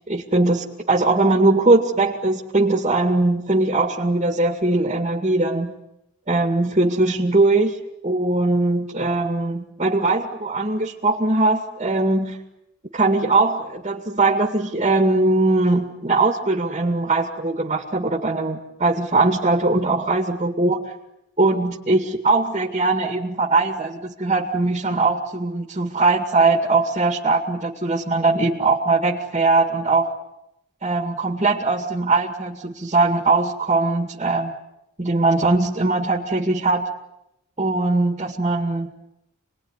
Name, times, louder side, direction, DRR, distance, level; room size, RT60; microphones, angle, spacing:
voice 1, 0.1-5.7 6.3-7.8 8.0-12.4 12.9-20.8 21.4-30.1 30.8-34.6 35.0-36.9 37.6-38.9, right 2 dB, 30° right, 4 dB, 2.2 m, -20 dB
28.5 x 20.5 x 9.8 m, 0.86 s
head